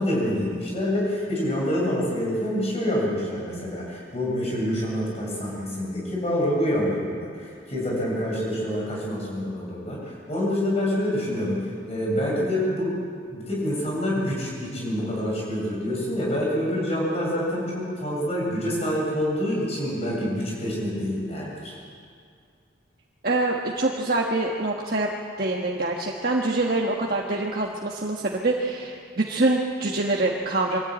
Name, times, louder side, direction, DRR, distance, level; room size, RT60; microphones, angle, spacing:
voice 1, 0.0-13.0 13.3-21.8, equal, 35° left, -3 dB, 7.0 m, -27 dB
voice 2, 23.2-25.1 25.4-30.8, right 2 dB, 50° right, -1 dB, 1.4 m, -25 dB
23.5 x 14.0 x 9.0 m, 2.2 s
head